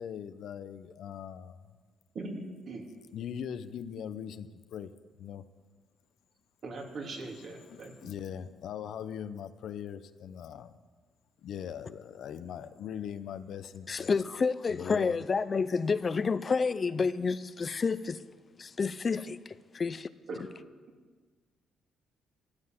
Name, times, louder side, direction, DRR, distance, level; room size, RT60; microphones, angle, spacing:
voice 1, 0.0-1.6 3.1-4.9 5.2-5.4 7.7-10.8 11.4-14.1 14.7-15.2, left 8 dB, 75° left, 0.7 m, -40 dB
voice 2, 2.1-2.9 6.6-8.1 20.3-20.4, right 2 dB, 60° right, 2.9 m, -40 dB
voice 3, 13.9-18.2 18.6-19.4 19.7-20.1, left 5 dB, 40° left, 0.5 m, -29 dB
13.0 x 12.0 x 7.5 m
cardioid pair, 90°, 0 cm